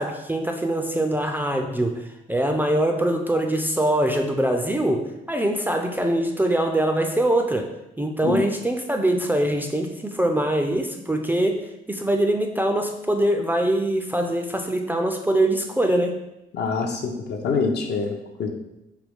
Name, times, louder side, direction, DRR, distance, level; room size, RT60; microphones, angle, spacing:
voice 1, 0.0-7.7 8.0-16.2, right 1 dB, 10° right, 3 dB, 0.3 m, -23 dB
voice 2, 16.5-18.1 18.4-18.5, left 4 dB, 55° left, 2 dB, 0.5 m, -25 dB
4.5 x 2.3 x 3.4 m, 0.89 s
cardioid pair, 90°, 20 cm